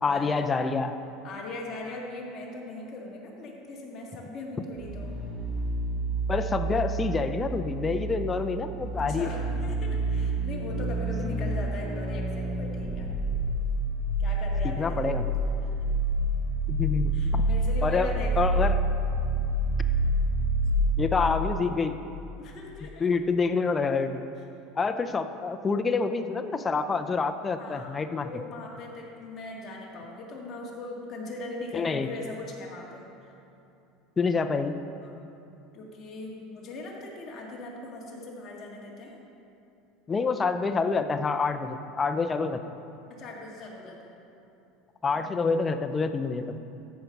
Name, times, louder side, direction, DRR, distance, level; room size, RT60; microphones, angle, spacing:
voice 1, 0.0-1.0 6.3-9.3 14.8-15.2 16.7-17.5 17.8-18.7 21.0-22.0 23.0-24.2 24.8-28.3 31.7-32.1 34.2-34.8 40.1-42.6 45.0-46.6, left 4 dB, 15° left, 8 dB, 0.4 m, -27 dB
voice 2, 1.2-5.1 9.0-13.1 14.2-15.3 15.6-15.7 17.1-18.4 22.4-23.1 27.6-33.3 35.0-35.1 35.7-39.2 43.1-44.2 45.1-45.3, left 2 dB, 35° left, -2 dB, 1.9 m, -40 dB
sound 1, 4.7-22.3 22.5-22.6, right 1 dB, 15° right, 1.5 m, -28 dB
14.0 x 5.2 x 5.8 m, 2.7 s
supercardioid pair, 150°, 0 cm